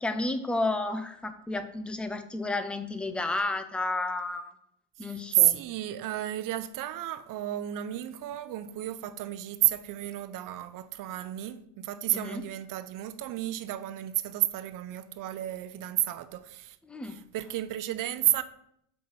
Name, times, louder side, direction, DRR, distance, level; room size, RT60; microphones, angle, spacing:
voice 1, 0.0-4.5 5.0-5.6 12.1-12.4 16.8-17.2, left 2 dB, 5° left, 0.3 m, -32 dB
voice 2, 5.0-16.8 17.0-18.4, right 14 dB, 45° right, 0.7 m, -31 dB
7.6 x 5.7 x 7.1 m
cardioid pair, 135°, 46 cm